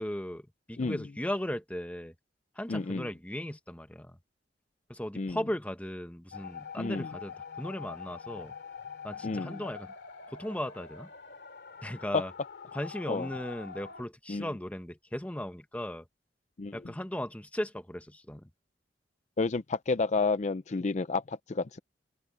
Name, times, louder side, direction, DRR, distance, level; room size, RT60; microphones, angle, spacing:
voice 1, 0.0-2.1 2.6-4.2 4.9-8.5 9.0-9.9 10.3-11.1 11.8-12.3 12.7-16.1 16.7-18.5, left 1 dB, 10° left, 1.0 m, -37 dB
voice 2, 2.7-3.1 5.2-5.4 6.8-7.1 9.2-9.6 12.1-12.2 13.1-13.3 14.3-14.5 16.6-16.8 19.4-21.8, left 3 dB, 40° left, 0.5 m, -30 dB
sound 1, 6.3-14.0, left 6 dB, 65° left, 2.4 m, -45 dB
open air
head